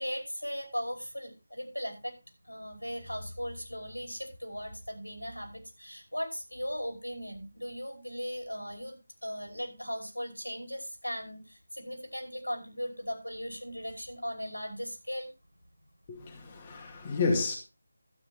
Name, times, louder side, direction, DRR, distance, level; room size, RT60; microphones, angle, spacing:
voice 1, 0.0-2.1 2.4-9.0 9.2-15.3, equal, 85° left, 5.5 m, -38 dB
voice 2, 16.1-17.6, left 4 dB, 20° left, 2.2 m, -30 dB
12.5 x 9.4 x 4.2 m
figure-of-eight pair, 160°, 0 cm